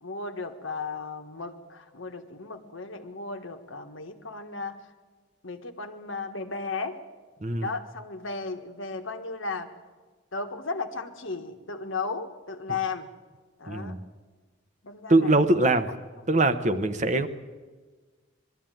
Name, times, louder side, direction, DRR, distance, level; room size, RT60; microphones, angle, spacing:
voice 1, 0.0-4.8 5.4-7.0 7.6-9.7 10.3-13.1 13.6-14.0 14.8-15.8 16.7-16.8, left 4 dB, 70° left, 7 dB, 1.5 m, -35 dB
voice 2, 13.7-14.0 15.1-15.9 16.3-17.3, right 2 dB, 35° right, 10 dB, 0.9 m, -22 dB
21.5 x 13.5 x 9.1 m, 1.4 s
head